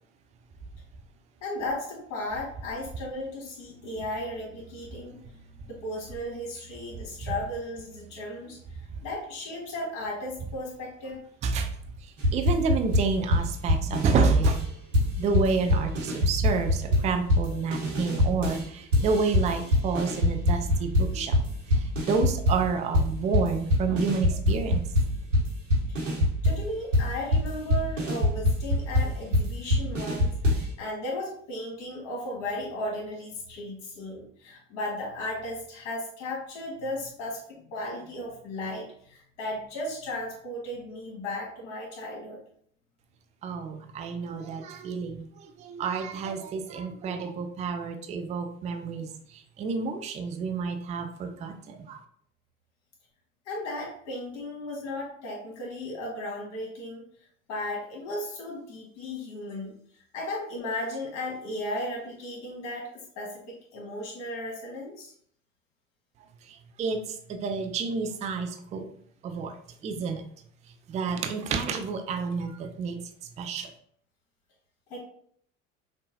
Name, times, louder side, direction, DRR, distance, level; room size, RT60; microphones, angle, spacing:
voice 1, 1.4-5.2 5.7-8.6 9.0-11.2 25.9-26.0 26.4-37.4 37.7-42.4 53.5-57.0 57.5-59.7 60.1-65.1 74.9-75.0, left 1 dB, 45° left, -3 dB, 1.4 m, -35 dB
voice 2, 11.4-14.6 15.2-21.4 21.7-24.9 43.4-52.0 66.4-68.9 69.2-69.6 69.8-70.2 70.9-73.0 73.4-73.7, right 4 dB, 20° right, 6 dB, 0.4 m, -29 dB
sound 1, 12.2-14.7 14.9-18.6 18.9-22.7 22.9-30.7, left 1 dB, 80° right, 1.2 m, -24 dB
5.4 x 2.5 x 2.7 m, 0.62 s
figure-of-eight pair, 65°, 38 cm